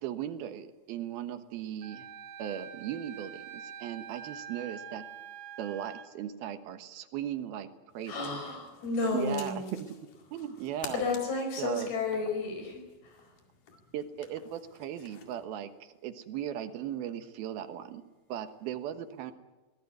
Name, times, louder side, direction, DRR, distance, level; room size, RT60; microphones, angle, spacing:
voice 1, 0.0-2.1 2.4-5.0 5.6-7.7 7.9-8.2 9.1-9.9 10.3-11.0 11.6-11.9 13.9-18.0 18.3-19.3, right 10 dB, 80° right, 9 dB, 3.1 m, -37 dB
Wind instrument woodwind instrument, 1.8-6.1, right 8 dB, 60° right, 2.5 m, -45 dB
sound 1, 7.9-15.4, left 6 dB, 60° left, 3.6 m, -51 dB
voice 2, 8.1-9.8 10.9-13.2, left 3 dB, 85° left, 4 dB, 7.1 m, -32 dB
22.5 x 17.5 x 9.5 m, 1.2 s
omnidirectional pair, 4.4 m